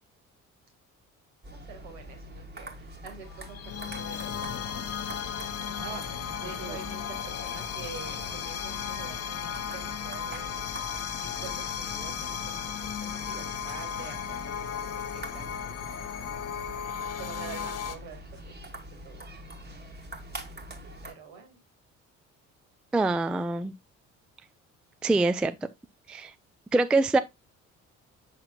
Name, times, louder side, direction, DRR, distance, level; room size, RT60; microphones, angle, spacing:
sound 1, 1.4-21.1, right 1 dB, 25° right, 1.4 m, -44 dB
voice 1, 1.5-4.9 5.2-5.7 6.2-10.7 11.2-16.0 16.3-16.4 17.2-18.5 18.9-19.2 21.0-21.6, right 5 dB, 70° right, 1.9 m, -47 dB
sound 2, 3.3-18.0, left 8 dB, 40° left, 0.7 m, -35 dB
voice 2, 22.9-23.7 25.0-25.5 26.1-26.3 26.7-27.2, right 3 dB, 5° right, 0.3 m, -24 dB
7.7 x 5.7 x 2.3 m
figure-of-eight pair, 45°, 39 cm